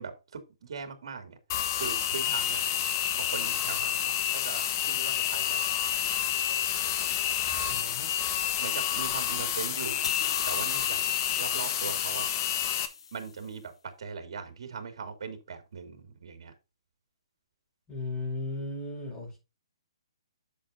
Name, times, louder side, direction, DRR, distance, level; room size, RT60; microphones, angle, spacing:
voice 1, 0.0-2.6 3.1-5.9 8.6-10.0 10.5-11.0 11.4-12.3 13.1-16.5, right 5 dB, 65° right, 7 dB, 3.0 m, -40 dB
sound 1, 1.5-12.9, left 10 dB, 35° left, 1.3 m, -29 dB
voice 2, 7.7-8.1 17.9-19.4, left 2 dB, 20° left, -2 dB, 5.3 m, -36 dB
sound 2, 10.0-13.4, left 6 dB, 70° left, 0.8 m, -38 dB
10.5 x 6.9 x 2.7 m, 0.26 s
hypercardioid pair, 150°, 3 cm